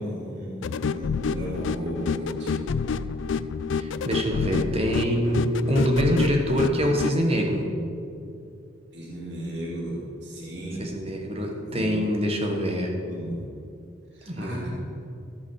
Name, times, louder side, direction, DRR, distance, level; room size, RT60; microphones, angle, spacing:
voice 1, 0.0-2.8 8.9-10.9 11.4-11.9 13.1-13.4 14.1-14.7, right 1 dB, 55° right, -5 dB, 2.5 m, -35 dB
sound 1, 0.6-7.2, left 5 dB, 65° left, 0.3 m, -28 dB
voice 2, 3.7-7.7 10.8-12.9 14.3-14.7, equal, 30° right, 2 dB, 1.3 m, -25 dB
14.0 x 5.4 x 6.4 m, 2.5 s
head